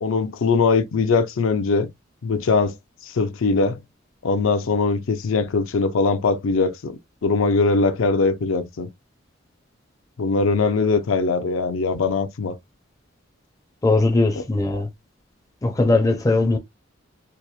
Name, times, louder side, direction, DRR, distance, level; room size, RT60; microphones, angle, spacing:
voice 1, 0.0-1.9 2.2-2.8 3.1-3.8 4.2-6.9 7.2-8.9 10.2-12.5 14.4-14.5, left 4 dB, 75° left, 0.5 m, -21 dB
voice 2, 13.8-14.9 15.6-16.6, left 2 dB, 15° left, 0.4 m, -19 dB
2.9 x 2.0 x 2.3 m
head